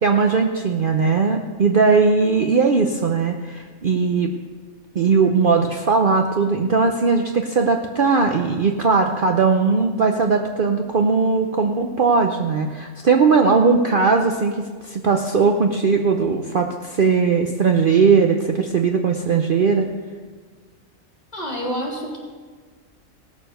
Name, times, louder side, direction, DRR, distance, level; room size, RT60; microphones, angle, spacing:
voice 1, 0.0-4.3 4.9-19.9, right 4 dB, 50° right, 4 dB, 0.8 m, -19 dB
voice 2, 21.3-22.2, equal, 30° left, -2 dB, 3.0 m, -28 dB
17.5 x 6.8 x 6.6 m, 1.5 s
omnidirectional pair, 1.4 m